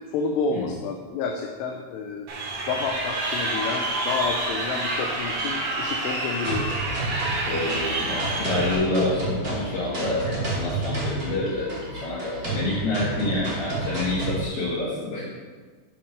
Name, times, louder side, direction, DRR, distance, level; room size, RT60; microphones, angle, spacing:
voice 1, 0.1-2.3 2.7-6.7, left 4 dB, 85° left, 2 dB, 2.7 m, -29 dB
Crowd, 2.3-8.7, right 2 dB, 55° right, 2.3 m, -28 dB
sound 1, 6.4-14.4, right 2 dB, 85° right, 0.5 m, -30 dB
voice 2, 7.4-15.3, left 2 dB, 65° left, -10 dB, 4.2 m, -28 dB
8.4 x 5.8 x 5.4 m, 1.4 s
omnidirectional pair, 4.7 m